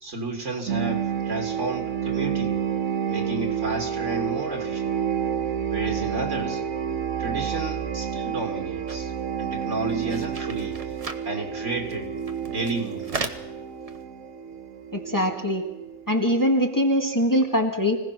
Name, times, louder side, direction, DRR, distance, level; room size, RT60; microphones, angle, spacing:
voice 1, 0.0-2.6 3.1-4.9 5.7-6.6 7.2-9.1 9.4-10.8 11.2-12.1 12.4-13.4, right 2 dB, 60° right, 3 dB, 3.0 m, -32 dB
sound 1, 0.7-16.1, right 8 dB, 85° right, 1.9 m, -29 dB
sound 2, 8.9-9.0 9.4-9.5 9.7-11.2 11.9-12.0 12.2-13.4 13.9-14.0, right 3 dB, 30° right, 1.1 m, -35 dB
voice 2, 14.9-15.6 16.1-18.0, equal, 15° left, 1 dB, 1.9 m, -22 dB
25.5 x 17.5 x 6.0 m, 0.98 s
omnidirectional pair, 1.4 m